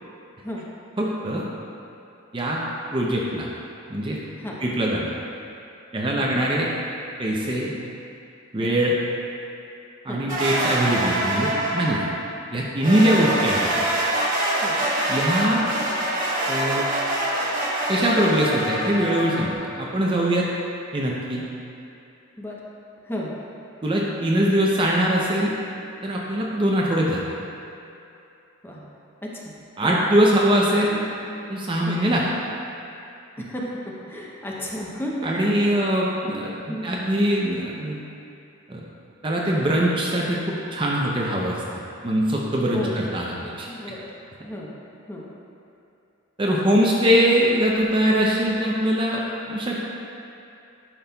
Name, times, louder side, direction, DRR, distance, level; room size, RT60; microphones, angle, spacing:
voice 1, 1.0-1.4 2.3-2.6 2.9-3.5 3.9-4.2 4.6-5.1 5.9-6.7 7.2-7.7 8.5-8.9 10.0-12.0 12.5-13.6 15.1-15.7 16.5-16.9 17.9-20.5 20.9-21.4 23.8-25.5 26.0-27.2 29.8-31.0 31.5-32.2 35.2-36.5 36.8-38.0 38.7-38.8 39.2-41.6 42.0-43.7 46.4-49.2 49.5-49.8, equal, 25° right, -3 dB, 0.6 m, -22 dB
sound 1, 10.3-12.2 12.8-19.5, right 1 dB, 40° right, 1.2 m, -25 dB
voice 2, 29.2-30.0 31.8-32.0 33.4-35.9 36.7-36.9 42.7-43.0 43.7-44.1 44.4-44.7 45.1-45.3, left 1 dB, 10° left, -4 dB, 0.8 m, -33 dB
10.5 x 5.9 x 2.3 m, 2.7 s
head